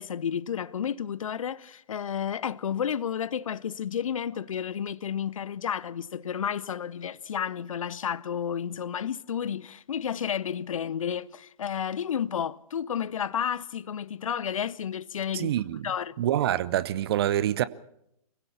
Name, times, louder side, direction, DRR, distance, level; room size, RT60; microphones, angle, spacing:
voice 1, 0.0-15.5 15.8-16.1, left 8 dB, 55° left, 0.7 m, -31 dB
voice 2, 15.3-15.9 16.2-17.6, right 12 dB, 40° right, 0.8 m, -26 dB
25.0 x 16.5 x 7.1 m
figure-of-eight pair, 125°, 20 cm